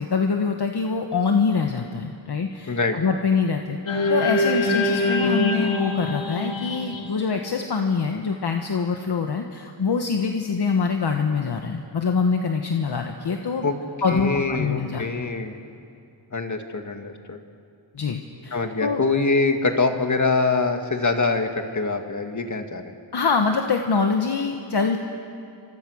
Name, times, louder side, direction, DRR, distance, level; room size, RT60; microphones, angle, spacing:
voice 1, 0.0-13.6 14.0-15.0 17.9-19.0 23.1-25.0, left 5 dB, 60° left, 3 dB, 1.5 m, -24 dB
voice 2, 2.7-3.0 13.6-13.8 14.1-15.6 16.3-17.4 18.5-22.8, left 3 dB, 40° left, 5 dB, 2.0 m, -24 dB
sound 1, 3.9-8.2, left 2 dB, 75° left, 2.8 m, -24 dB
29.0 x 26.0 x 6.5 m, 2.4 s
wide cardioid pair, 110°, 45 cm